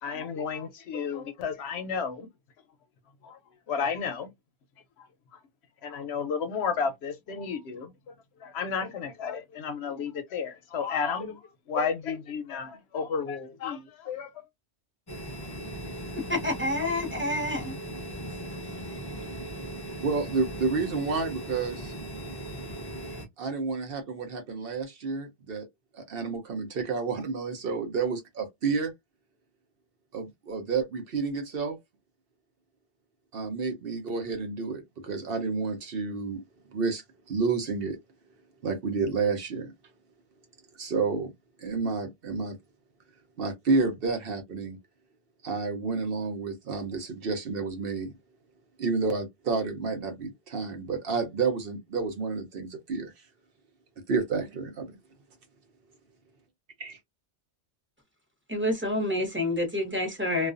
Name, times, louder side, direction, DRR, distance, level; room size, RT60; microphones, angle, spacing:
voice 1, 0.0-2.3 3.2-3.4 3.7-4.3 5.8-7.9 8.4-11.4 11.7-14.3, left 6 dB, 70° left, 0.9 m, -32 dB
sound 1, 15.1-23.3, right 1 dB, 35° left, 0.4 m, -38 dB
voice 2, 16.3-17.7 58.5-60.5, left 1 dB, 10° right, 0.9 m, -28 dB
voice 3, 20.0-21.9 23.4-25.7 25.9-28.9 30.1-31.8 33.3-36.4 36.7-38.0 38.6-39.7 40.8-41.3 41.6-42.6 43.4-44.8 45.4-48.1 48.8-53.1 54.1-54.9 56.8-57.0, right 4 dB, 60° right, 0.8 m, -30 dB
2.4 x 2.3 x 2.4 m
omnidirectional pair, 1.2 m